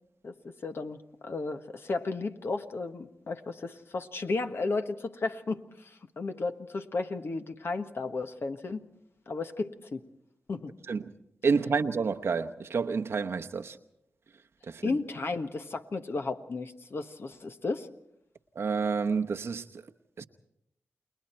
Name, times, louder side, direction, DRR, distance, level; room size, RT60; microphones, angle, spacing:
voice 1, 0.2-8.9 9.3-10.0 10.5-10.7 14.8-17.9, left 3 dB, 60° left, 1.4 m, -34 dB
voice 2, 11.4-13.8 14.7-14.9 18.6-19.6 20.2-20.3, right 5 dB, 70° right, 0.9 m, -29 dB
29.5 x 20.5 x 4.5 m
cardioid pair, 50°, 5 cm